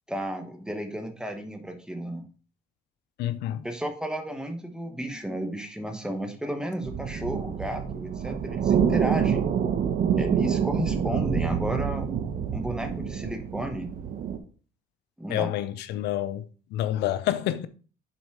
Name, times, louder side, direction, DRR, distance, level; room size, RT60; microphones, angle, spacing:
voice 1, 0.1-2.3 3.6-9.5 10.1-12.1 12.5-13.9 15.2-15.5, right 1 dB, 5° right, 1.2 m, -33 dB
voice 2, 3.2-3.6 15.3-16.4 16.7-17.7, left 13 dB, 80° left, 0.6 m, -28 dB
sound 1, 6.8-14.4, right 8 dB, 55° right, 1.0 m, -27 dB
7.0 x 4.1 x 4.7 m
cardioid pair, 110°, 17 cm